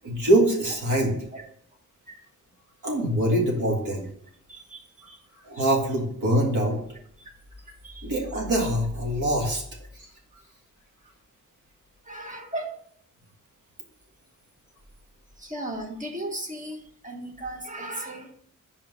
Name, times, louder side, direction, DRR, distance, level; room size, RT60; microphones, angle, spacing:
voice 1, 0.0-1.1 2.8-4.1 5.4-6.8 8.0-9.6 10.0-10.1, right 1 dB, 75° right, 0 dB, 1.9 m, -24 dB
voice 2, 4.5-5.2 7.8-8.1 12.0-12.7 15.4-18.3, right 1 dB, 25° right, 2 dB, 1.2 m, -36 dB
5.5 x 4.8 x 5.5 m, 0.65 s
wide cardioid pair, 175°, 30 cm